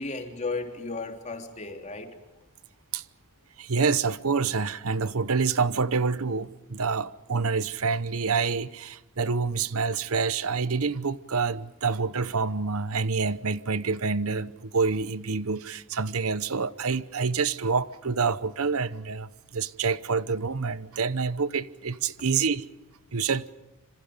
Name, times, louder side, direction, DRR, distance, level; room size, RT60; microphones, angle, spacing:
voice 1, 0.0-2.2, left 3 dB, 30° left, 3.4 m, -34 dB
voice 2, 3.6-22.6 23.1-23.5, right 5 dB, 70° right, 0.9 m, -27 dB
27.5 x 26.0 x 5.2 m
head